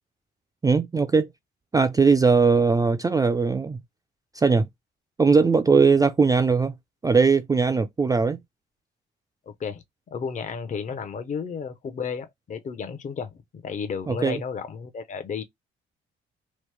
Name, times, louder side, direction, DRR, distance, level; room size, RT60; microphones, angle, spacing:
voice 1, 0.6-1.3 1.7-3.8 4.3-4.7 5.2-6.7 7.0-8.4 14.1-14.4, right 4 dB, 20° right, 0.4 m, -20 dB
voice 2, 9.5-9.8 10.1-15.4, left 6 dB, 40° left, 0.6 m, -33 dB
3.0 x 2.0 x 3.2 m
cardioid pair, 90°, 20 cm